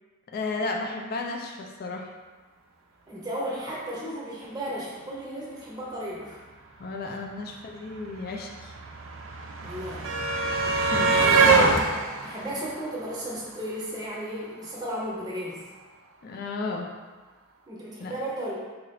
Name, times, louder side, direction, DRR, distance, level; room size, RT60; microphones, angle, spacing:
voice 1, 0.3-2.1 6.8-8.7 10.9-11.2 16.2-16.9 18.0-18.1, left 3 dB, 45° left, 2 dB, 0.3 m, -33 dB
voice 2, 3.1-6.4 9.6-10.1 11.0-11.8 12.2-15.6 17.7-18.6, equal, 20° right, -6 dB, 0.7 m, -34 dB
sound 1, 7.2-7.3 7.5-13.7 14.9-15.0 15.3-15.4, right 3 dB, 65° right, 0.4 m, -24 dB
3.8 x 2.4 x 3.1 m, 1.3 s
head